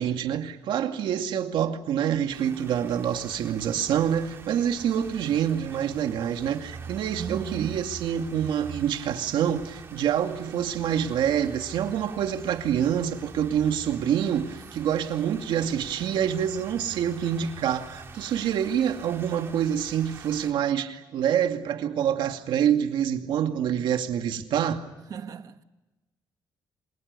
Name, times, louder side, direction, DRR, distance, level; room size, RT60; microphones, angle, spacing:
voice 1, 0.0-24.8, right 9 dB, 85° right, 2.4 m, -26 dB
sound 1, 2.3-20.5, right 5 dB, 30° right, 3.4 m, -45 dB
voice 2, 7.2-7.9 25.1-25.6, right 7 dB, 50° right, 1.5 m, -36 dB
28.5 x 26.5 x 7.0 m
cardioid pair, 170°, 8 cm